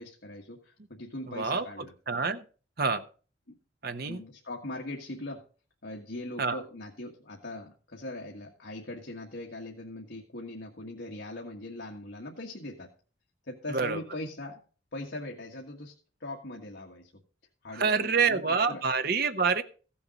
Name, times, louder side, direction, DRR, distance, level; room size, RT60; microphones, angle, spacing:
voice 1, 0.0-1.9 3.5-3.6 4.1-5.4 5.8-12.9 13.5-14.6 14.9-15.9 16.2-17.1 17.6-18.8, left 1 dB, 65° left, 0 dB, 1.7 m, -40 dB
voice 2, 1.3-2.4 2.8-3.0 3.8-4.2 6.4-6.6 13.7-14.0 17.7-19.6, right 5 dB, 55° right, 9 dB, 1.0 m, -27 dB
15.0 x 7.1 x 5.2 m, 0.39 s
head